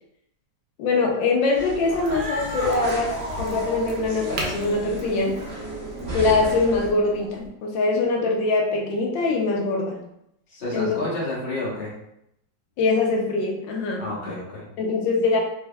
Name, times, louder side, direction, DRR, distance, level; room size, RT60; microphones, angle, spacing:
voice 1, 0.8-5.4 6.1-10.0 10.7-11.0 12.8-14.3 14.8-15.4, left 3 dB, 80° left, 0 dB, 1.3 m, -23 dB
sound 1, 1.5-6.9, equal, 25° right, 0.8 m, -36 dB
Cat, 1.8-7.5, right 1 dB, 45° right, 1.2 m, -35 dB
Crack, 2.0-7.5, right 2 dB, 70° right, 1.2 m, -39 dB
voice 2, 10.5-11.9 14.0-14.7, left 1 dB, 40° left, -6 dB, 1.1 m, -30 dB
3.3 x 3.3 x 2.2 m, 0.78 s
omnidirectional pair, 2.0 m